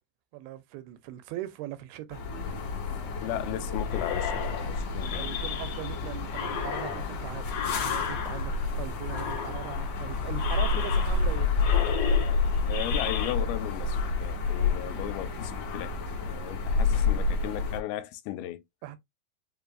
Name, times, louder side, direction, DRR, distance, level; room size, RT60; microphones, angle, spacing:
voice 1, 0.3-2.2 5.2-11.5 18.8-19.0, right 14 dB, 85° right, 2.6 m, -40 dB
sound 1, 2.1-17.8, left 4 dB, 55° left, 2.1 m, -29 dB
voice 2, 3.2-5.4 11.4-11.5 12.7-15.9 16.2-18.6, left 13 dB, 90° left, 2.5 m, -36 dB
sound 2, 3.9-6.0 6.3-8.7 9.1-10.0 10.3-11.3 11.6-13.3, left 8 dB, 70° left, 3.2 m, -35 dB
6.8 x 2.6 x 2.5 m
omnidirectional pair, 4.3 m